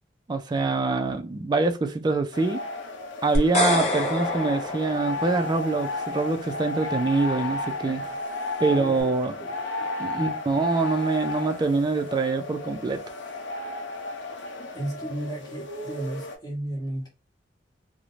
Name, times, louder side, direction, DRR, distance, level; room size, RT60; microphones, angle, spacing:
voice 1, 0.3-2.6 3.2-8.0 8.6-9.3 10.0-13.0, right 3 dB, 25° right, 0.3 m, -25 dB
sound 1, 2.3-16.4, left 2 dB, 75° left, 0.7 m, -33 dB
sound 2, 3.3-5.6, left 2 dB, 35° left, 0.6 m, -27 dB
voice 2, 7.8-8.2 8.7-9.9 10.1-10.3 14.7-17.1, right 1 dB, 20° left, 1.1 m, -35 dB
2.5 x 2.0 x 3.0 m
head